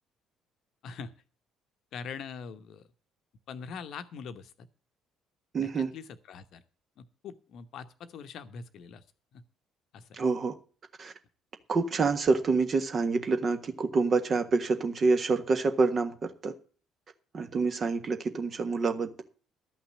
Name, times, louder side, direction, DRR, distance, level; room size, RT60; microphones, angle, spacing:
voice 1, 0.8-1.2 1.9-2.9 3.5-4.7 5.6-6.6 7.0-9.0 9.3-9.4 9.9-10.1, left 6 dB, 55° left, 11 dB, 0.9 m, -43 dB
voice 2, 5.5-5.9 10.1-10.5 11.0-11.1 11.7-16.5 17.3-19.2, right 4 dB, 40° right, 7 dB, 1.5 m, -27 dB
12.5 x 5.9 x 8.4 m, 0.40 s
figure-of-eight pair, 50°, 0 cm